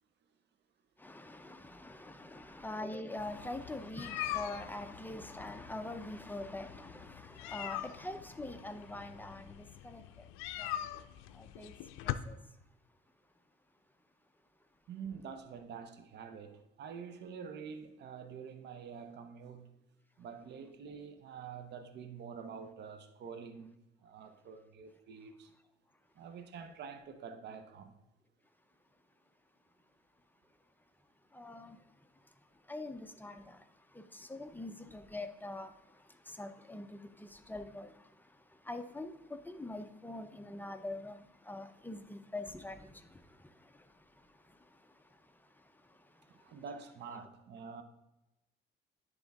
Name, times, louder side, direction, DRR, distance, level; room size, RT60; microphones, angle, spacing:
voice 1, 1.0-10.3 10.6-11.0 11.3-11.7 12.0-12.4 31.3-32.3 32.6-46.6, left 2 dB, 10° left, 0.6 m, -45 dB
sound 1, 3.2-12.1, left 14 dB, 90° left, 0.4 m, -43 dB
voice 2, 14.9-19.7 20.2-25.5 26.1-27.9 46.3-47.8, right 6 dB, 60° right, 0.8 m, -47 dB
10.5 x 3.5 x 3.6 m
cardioid pair, 90°, 20 cm